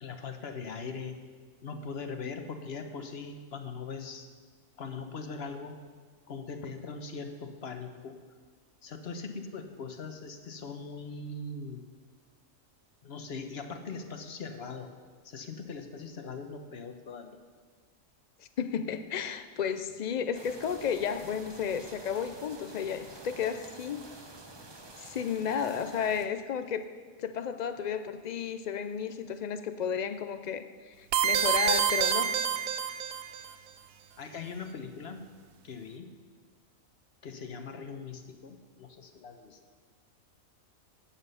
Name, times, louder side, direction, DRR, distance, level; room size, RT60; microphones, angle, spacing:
voice 1, 0.0-1.2 1.6-4.3 4.8-5.8 6.3-8.2 8.8-11.9 13.0-14.9 15.2-17.4 34.2-35.3 35.6-36.1 37.2-39.6, left 4 dB, 50° left, 6 dB, 1.1 m, -40 dB
voice 2, 18.4-24.1 25.0-26.9 27.2-32.4, left 7 dB, 85° left, 10 dB, 0.3 m, -33 dB
sound 1, 20.3-26.3, right 2 dB, 25° right, 0.8 m, -49 dB
sound 2, 31.1-33.5, right 8 dB, 85° right, 1.2 m, -27 dB
17.0 x 7.3 x 5.6 m, 1.5 s
omnidirectional pair, 1.4 m